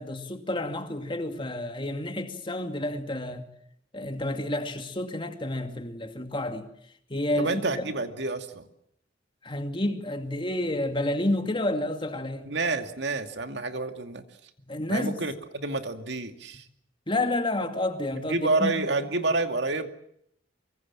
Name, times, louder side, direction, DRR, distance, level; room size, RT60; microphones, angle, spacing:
voice 1, 0.0-3.5 3.9-6.7 7.1-7.9 9.4-12.5 14.6-15.2 17.1-18.8, left 1 dB, 30° left, 2.5 m, -30 dB
voice 2, 7.4-8.7 12.4-14.2 14.9-16.6 18.1-19.9, right 3 dB, 65° right, 2.4 m, -29 dB
25.0 x 23.5 x 7.4 m
head